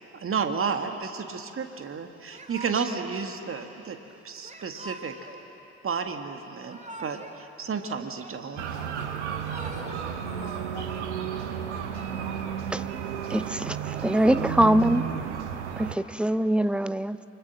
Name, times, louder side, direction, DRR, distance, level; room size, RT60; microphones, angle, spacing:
voice 1, 0.1-4.0 4.2-5.1 5.8-8.6, right 5 dB, 40° right, 6 dB, 1.9 m, -32 dB
Yell / Crying sobbing, 2.3-3.1 4.4-5.4 6.5-7.4 7.7-8.7 9.2-10.1, right 1 dB, 20° right, 2.9 m, -44 dB
sound 1, 8.6-16.0, right 8 dB, 75° right, 1.1 m, -32 dB
voice 2, 8.7-13.0 13.8-14.3, left 1 dB, 90° left, -3 dB, 2.6 m, -45 dB
voice 3, 13.3-13.8 14.0-15.1 15.8-17.2, right 1 dB, 5° right, 14 dB, 0.7 m, -23 dB
28.5 x 25.5 x 6.4 m, 3.0 s
figure-of-eight pair, 40°, 35 cm